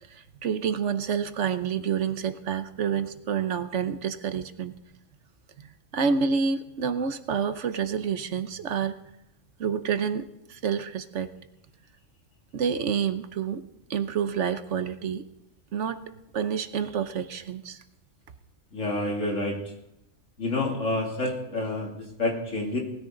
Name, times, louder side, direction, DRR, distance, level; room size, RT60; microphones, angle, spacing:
voice 1, 0.1-4.7 5.6-5.7 5.9-9.0 9.6-11.3 12.5-13.6 13.9-15.3 15.7-16.0 16.3-17.8, right 6 dB, 65° right, 10 dB, 1.2 m, -28 dB
voice 2, 18.7-19.6 20.4-22.8, left 2 dB, 75° left, -1 dB, 3.3 m, -28 dB
19.5 x 14.0 x 3.9 m, 0.86 s
omnidirectional pair, 1.3 m